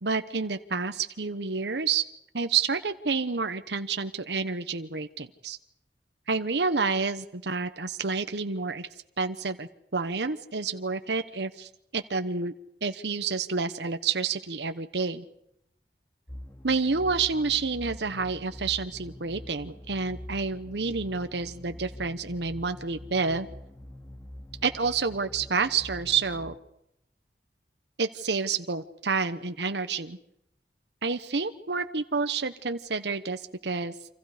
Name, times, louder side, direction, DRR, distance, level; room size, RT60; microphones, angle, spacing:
voice 1, 0.0-2.0 2.3-5.6 6.3-8.9 9.2-12.5 12.8-15.2 16.6-23.5 24.6-26.5 28.0-30.2 31.0-33.9, right 4 dB, 75° right, 9 dB, 1.1 m, -29 dB
sound 1, 16.3-26.6, left 1 dB, 15° left, 2.1 m, -44 dB
28.5 x 26.5 x 5.1 m, 0.80 s
head